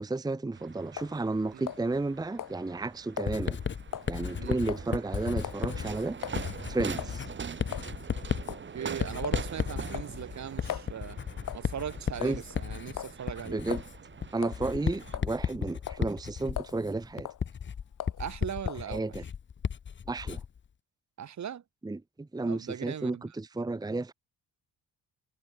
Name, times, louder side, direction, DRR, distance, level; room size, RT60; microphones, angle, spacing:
voice 1, 0.0-3.6 4.1-6.2 6.7-7.3 12.2-12.4 13.5-13.8 14.3-17.3 18.9-19.2 20.1-20.4 21.8-24.1, right 2 dB, 10° right, 0.8 m, -32 dB
sound 1, 0.5-15.2, right 6 dB, 30° right, 1.3 m, -43 dB
sound 2, 1.0-1.2 1.7-2.1 2.4-2.6 3.2-3.3 3.9-4.1 4.7-4.9 5.4-5.7 6.2-6.4 7.0-7.2 7.7-7.9 8.5-8.7 9.2-9.5 9.9-10.9 11.5-11.7 12.2-12.5 13.0-13.2 13.7-13.9 14.4-14.6 15.1-15.5 15.9-16.1 16.6-16.8 17.2-17.4 18.0-18.2 18.7-18.9, left 11 dB, 60° left, 1.0 m, -38 dB
Writing, 3.3-20.6, left 7 dB, 30° left, 0.7 m, -35 dB
voice 2, 8.5-11.2 11.5-13.6 18.2-19.0 21.2-21.6 22.5-23.2, right 9 dB, 50° right, 1.7 m, -39 dB
cardioid pair, 115°, 35 cm